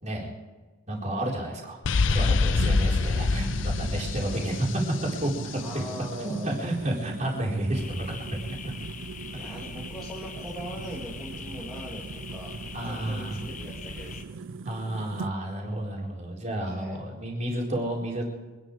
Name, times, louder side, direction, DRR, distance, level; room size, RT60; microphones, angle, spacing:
voice 1, 0.9-5.9 6.2-8.4 9.3-9.5 12.7-13.4 14.6-18.3, right 1 dB, 35° right, -2 dB, 4.1 m, -31 dB
sound 1, 1.8-5.6, left 4 dB, 65° left, 0.6 m, -25 dB
sound 2, 2.5-15.3, right 4 dB, 70° right, 0.5 m, -40 dB
voice 2, 4.2-4.6 5.6-6.7 9.3-12.6 12.8-14.4 16.6-17.0, equal, ahead, -5 dB, 2.3 m, -41 dB
sound 3, 7.7-14.2, left 4 dB, 40° left, 0.9 m, -41 dB
25.0 x 11.0 x 4.9 m, 1.3 s
head